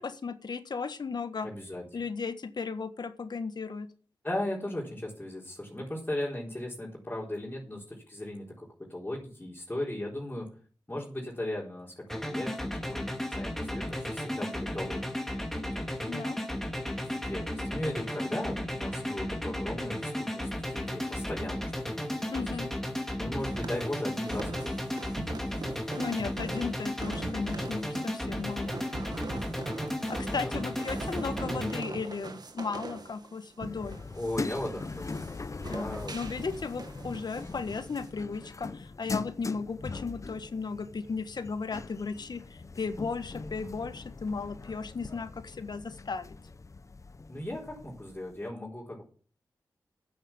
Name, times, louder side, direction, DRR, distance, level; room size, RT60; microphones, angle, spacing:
voice 1, 0.0-1.5 1.9-3.9 16.1-16.4 22.3-22.7 25.9-28.7 30.1-34.0 35.7-46.4, left 4 dB, 65° left, 10 dB, 1.4 m, -35 dB
voice 2, 1.4-1.8 4.2-10.5 10.9-15.0 15.7-15.9 17.0-22.4 23.2-25.0 30.1-30.5 34.1-35.1 35.6-36.2 47.3-49.0, left 1 dB, 20° left, -4 dB, 4.2 m, -37 dB
sound 1, 12.1-31.8, left 1 dB, 5° left, 2.2 m, -34 dB
sound 2, 23.4-38.1, right 3 dB, 60° right, 1.7 m, -43 dB
sound 3, 33.6-48.4, left 3 dB, 40° left, 0.8 m, -41 dB
9.1 x 8.8 x 7.2 m, 0.41 s
cardioid pair, 50°, 8 cm